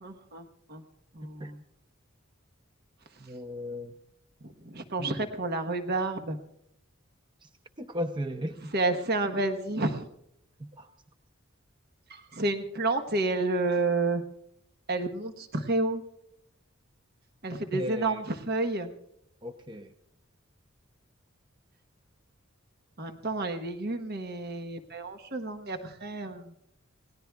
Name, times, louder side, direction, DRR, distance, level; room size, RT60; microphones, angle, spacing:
voice 1, 0.0-0.4 0.7-0.8 1.2-1.6 4.7-6.4 8.7-10.1 12.1-14.2 14.9-16.0 17.4-18.9 23.0-26.5, right 2 dB, 50° right, 8 dB, 1.2 m, -30 dB
voice 2, 3.2-4.0 5.0-5.3 7.4-7.5 7.8-8.7 10.6-10.9 17.7-18.2 19.4-19.9, equal, 25° right, 6 dB, 0.7 m, -36 dB
28.0 x 18.5 x 2.3 m, 0.78 s
head